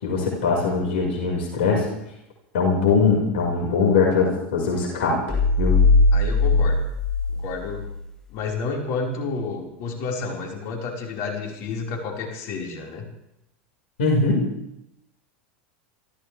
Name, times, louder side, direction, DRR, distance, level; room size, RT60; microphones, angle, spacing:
voice 1, 0.0-1.9 2.5-5.7 14.0-14.4, left 4 dB, 75° left, -1 dB, 5.6 m, -21 dB
sound 1, 5.3-8.0, left 3 dB, 10° left, 4.0 m, -19 dB
voice 2, 6.1-6.9 7.4-7.9 8.3-13.1, left 4 dB, 55° left, 0 dB, 5.1 m, -30 dB
29.0 x 14.0 x 3.5 m, 0.83 s
hypercardioid pair, 100°, 6 cm